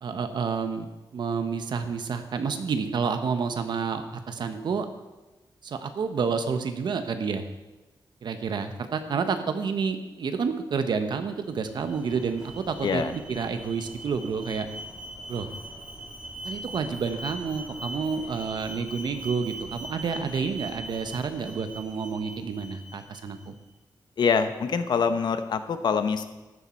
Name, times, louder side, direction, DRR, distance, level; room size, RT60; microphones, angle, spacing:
voice 1, 0.0-4.9 5.6-7.4 8.2-14.7 15.3-15.5 16.4-23.5, right 5 dB, 65° right, 8 dB, 1.2 m, -29 dB
Alarm, 11.4-23.5, right 1 dB, 10° right, 2.5 m, -41 dB
voice 2, 12.8-13.1 24.2-26.3, left 5 dB, 65° left, 9 dB, 1.0 m, -25 dB
14.0 x 11.0 x 4.5 m, 1.1 s
wide cardioid pair, 170°, 8 cm